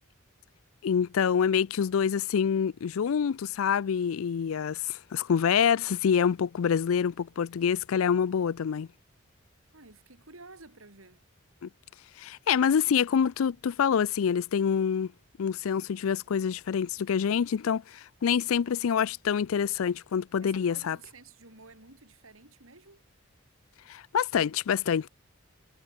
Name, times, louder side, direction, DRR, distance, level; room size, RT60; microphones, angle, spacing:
voice 1, 0.8-8.9 11.6-11.7 12.2-15.1 15.4-17.8 18.2-21.0 23.9-25.1, left 7 dB, 80° left, 0.4 m, -26 dB
voice 2, 9.7-11.2 20.4-23.0 24.1-24.2, right 3 dB, 80° right, 5.5 m, -52 dB
head